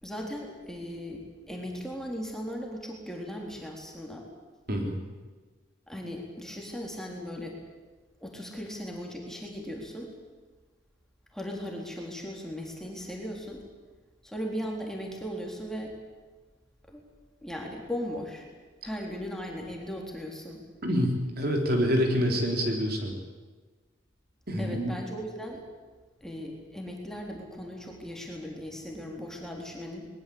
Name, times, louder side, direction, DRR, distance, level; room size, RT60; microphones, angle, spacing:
voice 1, 0.0-4.3 5.9-7.6 8.2-10.1 11.3-13.6 14.2-15.9 16.9-17.0 17.4-18.4 18.8-20.6 21.7-21.8 24.6-25.6 26.2-30.1, equal, ahead, 0 dB, 3.6 m, -37 dB
voice 2, 4.7-5.0 20.8-23.1 24.5-24.9, equal, 50° right, 2 dB, 3.7 m, -26 dB
21.5 x 20.5 x 8.7 m, 1.3 s
head